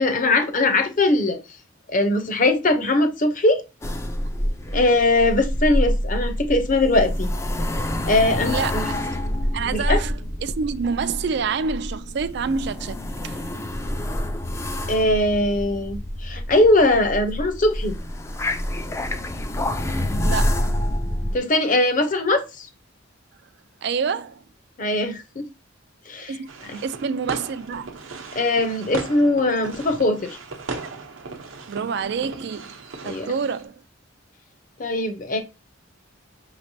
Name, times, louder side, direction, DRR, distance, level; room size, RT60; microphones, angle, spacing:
voice 1, 0.0-1.4 1.9-3.6 4.7-7.3 8.1-8.8 9.7-10.0 14.9-17.9 21.3-22.7 24.8-25.4 26.1-26.3 26.7-26.8 28.3-30.4 33.0-33.3 34.8-35.4, left 2 dB, 40° left, 0.8 m, -20 dB
sound 1, 3.8-21.4, left 1 dB, 15° left, 0.4 m, -27 dB
voice 2, 8.5-9.0 9.5-13.0 13.2-13.4 20.2-20.7 23.8-24.4 26.3-26.5 26.8-28.0 31.7-33.8, right 5 dB, 55° right, 0.4 m, -27 dB
sound 2, 26.5-33.7, right 3 dB, 80° right, 0.8 m, -37 dB
5.8 x 3.2 x 2.7 m
head